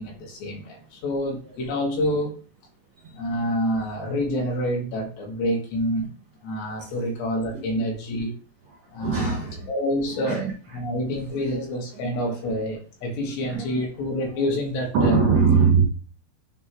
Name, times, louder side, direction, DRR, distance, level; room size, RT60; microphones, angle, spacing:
voice 1, 0.0-2.3 3.1-6.1 6.4-8.3 8.9-10.5 10.7-15.2, equal, 75° left, 3.8 m, -27 dB
voice 2, 7.5-7.8 8.7-9.7 10.0-10.8 11.5-11.6 13.4-13.9 14.2-14.3 14.9-15.8, right 5 dB, 85° right, 1.9 m, -23 dB
9.9 x 3.6 x 3.1 m
omnidirectional pair, 5.0 m